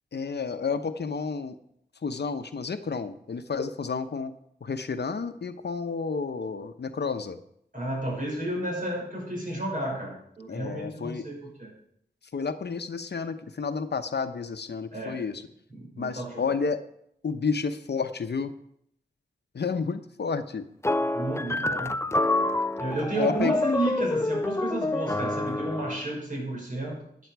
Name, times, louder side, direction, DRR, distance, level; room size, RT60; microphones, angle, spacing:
voice 1, 0.1-1.6 2.0-4.3 4.6-7.4 10.5-11.3 12.3-15.4 16.0-16.8 17.2-18.5 19.5-20.6 23.2-23.5, left 5 dB, 65° left, 9 dB, 0.8 m, -31 dB
voice 2, 7.7-11.7 14.9-15.2 15.7-16.4 21.1-22.0 22.8-27.0, right 1 dB, 50° right, -2 dB, 6.0 m, -32 dB
sound 1, 20.8-26.1, left 2 dB, 15° left, 0.4 m, -27 dB
14.0 x 9.3 x 4.7 m, 0.71 s
wide cardioid pair, 70°, 18 cm